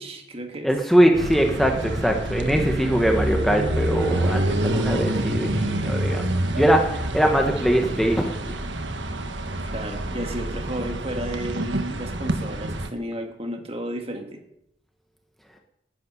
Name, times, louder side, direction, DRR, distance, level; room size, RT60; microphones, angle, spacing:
voice 1, 0.0-0.7 9.6-14.4, right 1 dB, 35° right, 4 dB, 2.0 m, -33 dB
voice 2, 0.6-6.3 6.6-8.6, equal, ahead, 2 dB, 1.4 m, -21 dB
sound 1, 1.1-12.9, right 1 dB, 80° right, 1.5 m, -27 dB
11.5 x 8.3 x 9.9 m, 0.80 s
head